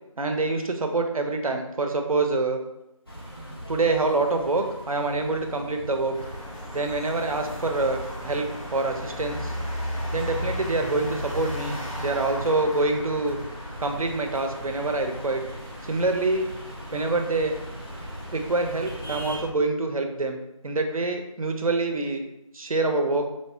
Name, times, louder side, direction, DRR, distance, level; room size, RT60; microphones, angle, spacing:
voice 1, 0.2-2.6 3.7-6.2 6.7-9.5 10.1-13.4 13.8-15.4 15.8-16.5 16.9-17.6 18.3-20.4 20.6-22.2 22.5-23.3, right 3 dB, 85° right, 4 dB, 0.5 m, -26 dB
sound 1, 3.1-19.4, equal, 45° left, 0.5 m, -42 dB
sound 2, 6.1-19.5, equal, 75° left, 1.1 m, -36 dB
3.0 x 2.1 x 2.7 m, 0.89 s
figure-of-eight pair, 180°, 18 cm